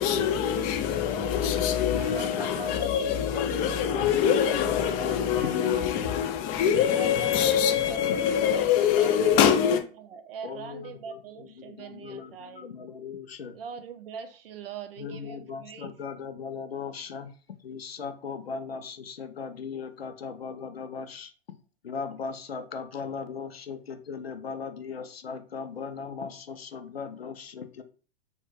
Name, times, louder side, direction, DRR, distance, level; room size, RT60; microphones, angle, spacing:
voice 1, 0.0-9.8, left 8 dB, 30° left, 0.4 m, -24 dB
voice 2, 1.9-5.5 5.7-5.8 6.8-12.7 13.6-15.9, right 7 dB, 75° right, 0.5 m, -43 dB
voice 3, 5.0-5.5 8.0-8.2 10.4-13.6 15.0-21.3 21.8-27.8, left 5 dB, 90° left, 0.5 m, -39 dB
2.2 x 2.1 x 3.1 m
figure-of-eight pair, 95°, 29 cm